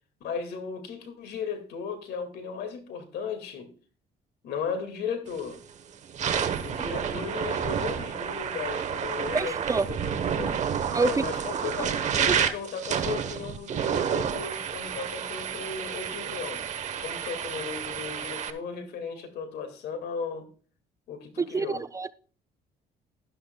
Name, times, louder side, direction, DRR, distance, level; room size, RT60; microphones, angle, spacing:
voice 1, 0.2-3.7 4.4-5.6 6.6-9.6 9.9-10.5 11.0-16.6 17.0-20.5 21.1-21.8, left 6 dB, 75° left, 2.1 m, -36 dB
sound 1, 5.3-5.6 6.0-18.5, right 7 dB, 45° right, 1.0 m, -30 dB
voice 2, 9.3-9.9 10.9-11.2 11.8-11.9 12.3-12.4 21.4-22.1, right 4 dB, 20° right, 0.3 m, -27 dB
12.0 x 11.0 x 2.3 m
cardioid pair, 110°, 17 cm